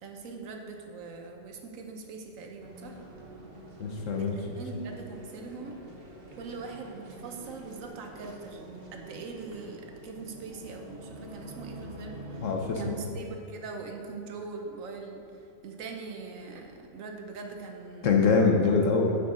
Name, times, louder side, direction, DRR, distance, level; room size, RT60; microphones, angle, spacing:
voice 1, 0.0-3.0 4.2-5.8 6.4-15.3 15.6-18.4, right 4 dB, 65° right, 3 dB, 1.2 m, -42 dB
sound 1, 2.6-12.9, right 1 dB, 45° right, 1.1 m, -46 dB
voice 2, 3.8-4.4 12.4-12.8 18.0-19.2, left 4 dB, 65° left, 2 dB, 1.0 m, -23 dB
9.3 x 6.5 x 3.8 m, 2.7 s
omnidirectional pair, 1.6 m